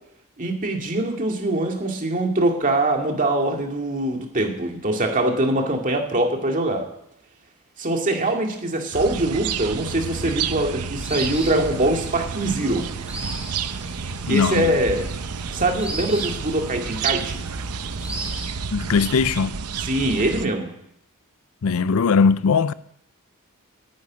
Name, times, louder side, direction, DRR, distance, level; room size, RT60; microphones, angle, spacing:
voice 1, 0.4-6.9 7.8-12.9 14.3-15.1 15.5-17.4 19.8-20.7, right 1 dB, 35° right, 2.2 m, -23 dB
sound 1, 8.9-20.5, right 6 dB, 85° right, 0.8 m, -30 dB
sound 2, 10.9-18.5, right 2 dB, 5° right, 2.6 m, -38 dB
voice 2, 14.3-14.8 18.7-19.6 21.6-22.7, left 5 dB, 65° left, 0.5 m, -20 dB
11.0 x 9.7 x 9.4 m
head